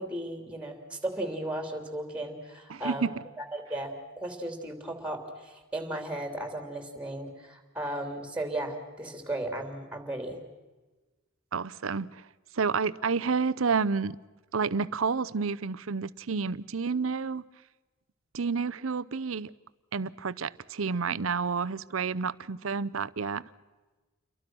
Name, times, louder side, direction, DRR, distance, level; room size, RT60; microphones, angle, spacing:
voice 1, 0.0-10.4, right 1 dB, 5° right, 6 dB, 3.1 m, -35 dB
voice 2, 2.7-3.1 11.5-12.2 12.5-14.2 14.5-17.4 18.3-19.5 19.9-23.4, right 5 dB, 85° right, 17 dB, 0.7 m, -30 dB
29.0 x 23.5 x 6.2 m, 1.2 s
head